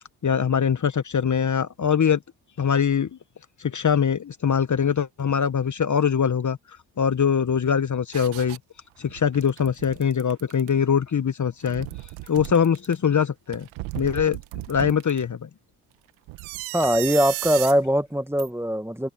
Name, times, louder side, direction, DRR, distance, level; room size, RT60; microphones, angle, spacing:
voice 1, 0.2-2.2 2.6-3.2 3.6-6.6 7.0-8.6 9.0-11.9 12.3-13.7 13.9-14.4 14.7-15.5, left 7 dB, 40° left, 1.5 m, -22 dB
sound 1, 8.1-8.6 9.0-10.7 11.5-13.0 13.5-15.2 16.3-17.8 18.4-18.5, right 20 dB, 80° right, 1.8 m, -35 dB
voice 2, 16.7-19.1, equal, 5° right, 1.9 m, -22 dB
hypercardioid pair, 45°, 47 cm